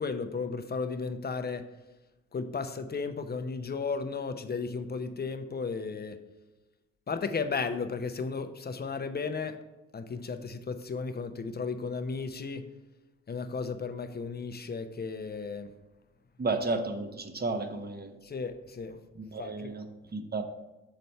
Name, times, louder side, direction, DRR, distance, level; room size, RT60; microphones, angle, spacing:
voice 1, 0.0-1.6 2.3-6.2 7.1-9.5 9.9-12.6 13.3-15.7 18.2-19.0 19.4-19.7, left 4 dB, 25° left, 8 dB, 0.7 m, -34 dB
voice 2, 16.4-18.1 19.2-19.8 20.1-20.4, right 3 dB, 25° right, 7 dB, 1.0 m, -32 dB
6.8 x 4.0 x 4.5 m, 1.0 s
hypercardioid pair, 55°, 37 cm